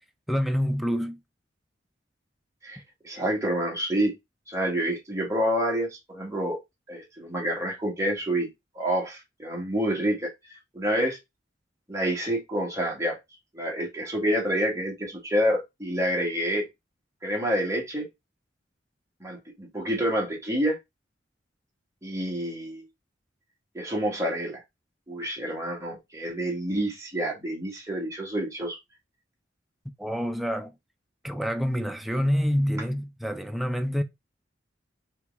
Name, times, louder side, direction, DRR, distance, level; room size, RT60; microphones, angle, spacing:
voice 1, 0.3-1.2 30.0-30.7 31.2-34.0, equal, ahead, 0.4 m, -27 dB
voice 2, 2.6-4.1 4.5-6.6 6.9-8.5 8.7-10.3 10.7-11.2 11.9-13.2 13.5-16.6 17.2-18.1 19.2-20.8 22.0-22.8 23.7-24.6 25.1-28.8, equal, 15° right, 1.6 m, -28 dB
4.5 x 2.9 x 3.5 m
head